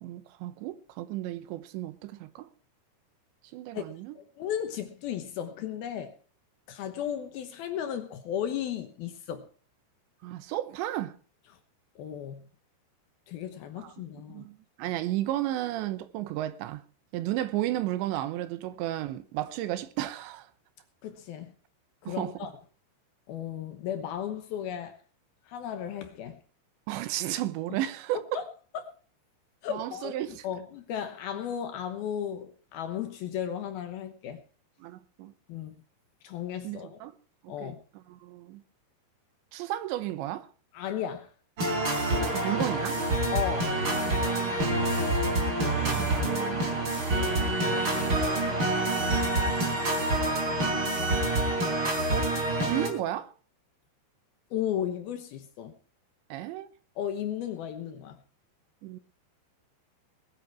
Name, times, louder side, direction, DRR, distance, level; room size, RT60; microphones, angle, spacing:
voice 1, 0.0-2.5 3.5-4.1 10.2-11.1 13.8-13.9 14.3-16.8 17.1-20.5 22.1-22.3 26.9-28.2 29.7-30.4 34.8-35.3 36.6-37.1 37.4-37.7 38.1-38.6 39.5-40.5 42.3-43.0 45.9-46.8 52.1-52.3 52.6-53.3 56.3-56.7 58.8-59.0, right 14 dB, 80° right, 3.2 m, -33 dB
voice 2, 4.2-6.1 6.7-9.5 12.0-12.4 13.3-14.5 21.0-21.5 22.0-22.5 23.3-25.0 25.5-26.4 27.7-27.8 28.3-28.5 28.7-28.9 29.6-34.4 35.5-35.8 36.2-37.0 37.5-37.8 40.7-41.3 43.3-43.7 54.5-55.7 57.0-58.2, left 9 dB, 70° left, 2.6 m, -35 dB
sound 1, 41.6-52.9, right 2 dB, 30° right, 3.7 m, -27 dB
21.0 x 8.8 x 4.7 m
omnidirectional pair, 5.2 m